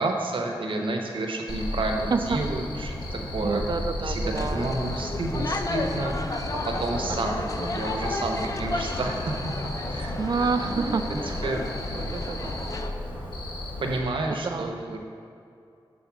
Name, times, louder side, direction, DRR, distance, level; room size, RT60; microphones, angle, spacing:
voice 1, 0.0-3.6 4.0-9.3 9.9-10.2 10.6-11.6 13.8-15.0, right 2 dB, 80° right, 2 dB, 0.8 m, -30 dB
Cricket, 1.5-14.0, left 1 dB, 75° left, 1.1 m, -34 dB
voice 2, 2.1-2.4 3.4-4.7 7.6-7.7 10.2-11.4 11.9-12.7 14.4-14.7, right 4 dB, 50° right, 9 dB, 0.3 m, -29 dB
sound 1, 4.3-12.9, left 2 dB, 40° left, 0.4 m, -33 dB
7.2 x 3.9 x 6.0 m, 2.5 s
wide cardioid pair, 100°, 9 cm